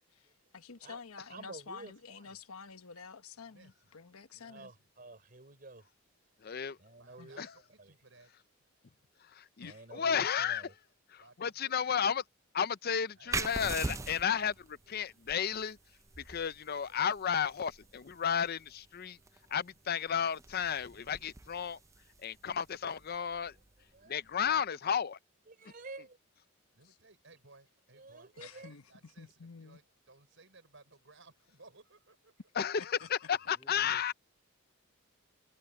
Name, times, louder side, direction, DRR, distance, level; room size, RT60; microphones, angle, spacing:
voice 1, 0.1-4.7 7.2-7.3 9.6-9.8 10.1-10.3 28.4-29.8 32.6-33.1, left 5 dB, 90° left, 1.1 m, -49 dB
voice 2, 1.3-2.4 4.4-5.9 6.8-7.4 7.8-7.9 9.6-10.7 23.5-23.6 23.9-24.6 25.5-26.2 28.0-28.7, right 3 dB, 40° right, 4.0 m, -51 dB
voice 3, 3.3-4.9 7.0-8.3 11.2-12.1 13.0-13.4 26.7-32.4, right 3 dB, 60° right, 6.4 m, -61 dB
voice 4, 6.4-6.8 7.4-7.5 9.4-10.6 11.1-12.2 12.5-15.8 16.3-19.2 19.5-21.8 22.2-23.5 24.1-25.2 32.6-32.8 33.1-34.1, left 7 dB, 45° left, 0.5 m, -33 dB
sound 1, 13.3-24.6, right 3 dB, 15° right, 0.5 m, -44 dB
voice 5, 33.3-34.1, left 1 dB, 15° left, 3.1 m, -60 dB
head